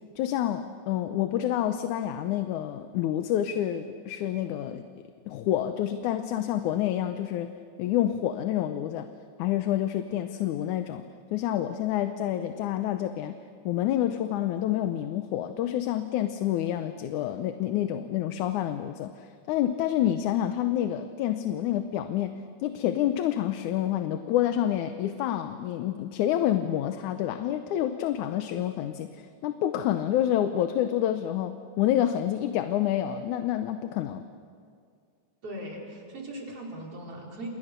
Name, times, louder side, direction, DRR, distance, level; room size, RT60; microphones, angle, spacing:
voice 1, 0.2-4.9 5.3-7.5 7.8-9.1 9.4-11.0 11.3-13.3 13.7-22.3 22.6-34.2, left 11 dB, 75° left, 8 dB, 2.2 m, -28 dB
voice 2, 35.4-37.5, right 1 dB, 45° right, -2 dB, 5.5 m, -39 dB
30.0 x 28.5 x 6.8 m, 2.3 s
omnidirectional pair, 3.7 m